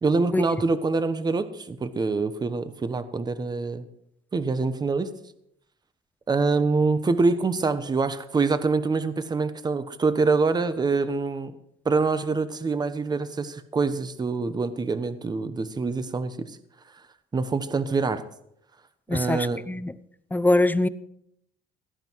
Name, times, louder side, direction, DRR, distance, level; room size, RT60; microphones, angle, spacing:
voice 1, 0.0-3.9 4.3-5.1 6.3-11.5 11.8-16.5 17.3-18.2 19.1-19.6, right 4 dB, 25° right, 12 dB, 1.1 m, -25 dB
voice 2, 19.1-19.9 20.3-20.9, left 2 dB, 10° left, 15 dB, 0.6 m, -23 dB
17.5 x 11.5 x 4.7 m, 0.76 s
cardioid pair, 110°, 17 cm